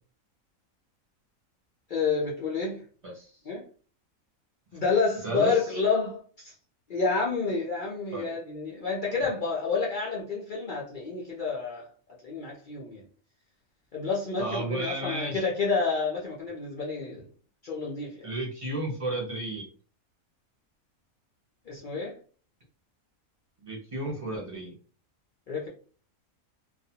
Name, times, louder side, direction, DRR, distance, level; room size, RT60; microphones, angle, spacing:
voice 1, 1.9-2.8 3.5-3.6 4.7-6.5 6.9-11.9 12.2-13.0 13.9-17.3 17.6-18.3 21.7-22.2 25.5-25.7, left 4 dB, 65° left, 0.5 m, -29 dB
voice 2, 3.0-3.4 5.2-5.8 8.1-8.4 14.4-15.5 18.2-19.7 23.6-24.8, right 2 dB, 40° right, 0.5 m, -33 dB
2.4 x 2.2 x 2.7 m
omnidirectional pair, 1.5 m